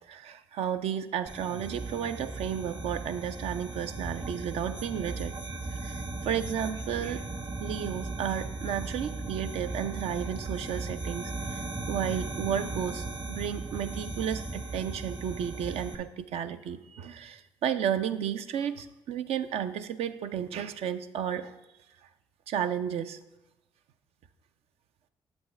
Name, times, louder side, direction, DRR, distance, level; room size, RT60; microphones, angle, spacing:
voice 1, 0.1-5.3 5.7-7.2 7.6-21.5 22.5-23.2, right 9 dB, 70° right, 10 dB, 0.5 m, -33 dB
sound 1, 1.3-15.9, right 3 dB, 45° right, 1.1 m, -37 dB
8.0 x 7.8 x 3.2 m, 0.96 s
hypercardioid pair, 45°, 11 cm